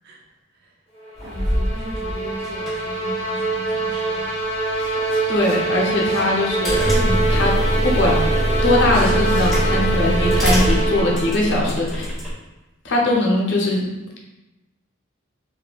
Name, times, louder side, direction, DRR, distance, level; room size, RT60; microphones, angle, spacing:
sound 1, 1.0-11.6, right 3 dB, 30° left, 0.8 m, -24 dB
sound 2, 1.2-12.3, equal, ahead, 1.0 m, -23 dB
voice 1, 1.2-4.3, equal, 50° right, -1 dB, 0.4 m, -38 dB
sound 3, 4.6-11.2, right 1 dB, 20° right, 1.2 m, -41 dB
voice 2, 5.3-7.5 7.8-8.2 8.6-12.1 12.8-13.8, left 1 dB, 55° left, -2 dB, 0.6 m, -21 dB
3.4 x 2.6 x 2.3 m, 1.0 s
head